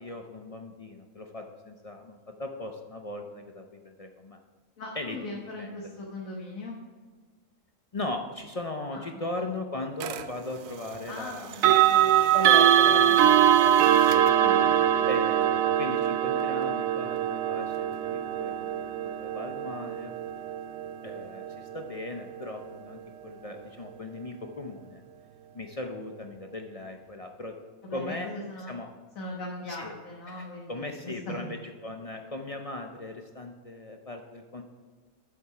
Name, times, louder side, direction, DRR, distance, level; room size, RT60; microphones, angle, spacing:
voice 1, 0.0-4.4 5.0-5.2 5.6-5.9 7.9-11.6 12.3-13.7 14.1-14.3 15.1-20.1 21.0-25.0 25.5-27.6 27.9-28.3 28.7-28.9 29.7-29.9 30.3-34.6, left 2 dB, 40° left, 4 dB, 0.5 m, -38 dB
voice 2, 4.8-6.8 8.9-9.5 11.1-12.4 12.8-13.3 14.4-15.1 27.8-28.8 29.2-31.5, left 1 dB, 85° left, -2 dB, 1.7 m, -40 dB
sound 1, 10.0-10.2 11.5-22.4, right 10 dB, 85° right, 1.0 m, -23 dB
8.6 x 7.3 x 4.8 m, 1.5 s
omnidirectional pair, 1.4 m